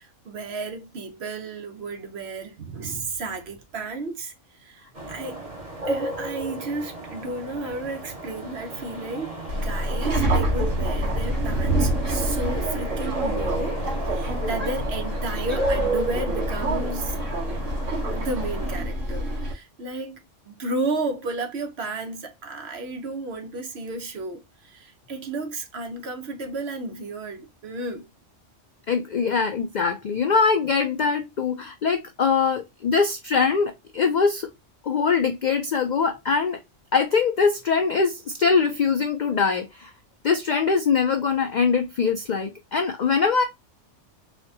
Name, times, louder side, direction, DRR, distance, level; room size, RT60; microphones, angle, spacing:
voice 1, 0.0-5.4 5.9-17.2 18.1-28.1, right 2 dB, 60° right, 1.0 m, -33 dB
sound 1, 4.9-18.8, right 2 dB, 30° right, 1.1 m, -33 dB
Subway metro underground, 9.5-19.5, right 1 dB, 80° right, 1.8 m, -27 dB
voice 2, 28.9-34.5 34.8-36.6 36.9-39.9 40.2-43.4, left 5 dB, 70° left, 0.4 m, -22 dB
4.0 x 2.1 x 2.6 m
omnidirectional pair, 1.3 m